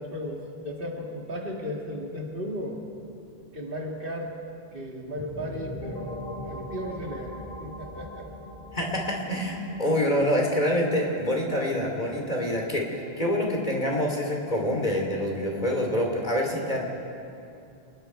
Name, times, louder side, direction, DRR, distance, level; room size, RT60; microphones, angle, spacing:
voice 1, 0.0-2.9 3.5-4.3 4.7-8.3, equal, 60° right, 0 dB, 2.5 m, -35 dB
sound 1, 5.2-14.7, left 1 dB, 20° left, 3.0 m, -42 dB
voice 2, 8.7-16.8, left 1 dB, 45° left, 0 dB, 3.5 m, -26 dB
28.0 x 21.0 x 4.7 m, 2.6 s
omnidirectional pair, 1.0 m